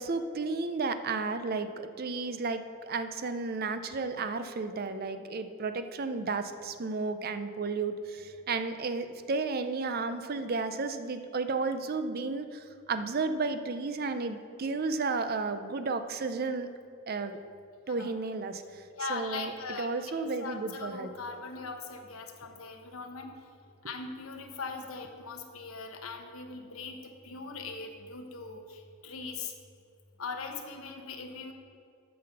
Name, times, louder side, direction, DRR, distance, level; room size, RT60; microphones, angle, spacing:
voice 1, 0.0-16.7 17.1-17.4 17.9-18.8 19.1-19.5 19.8-21.1, right 4 dB, 45° right, 9 dB, 0.6 m, -33 dB
voice 2, 19.0-23.4 23.8-29.5 30.2-31.5, left 4 dB, 85° left, 4 dB, 1.0 m, -40 dB
8.6 x 5.9 x 6.8 m, 2.4 s
head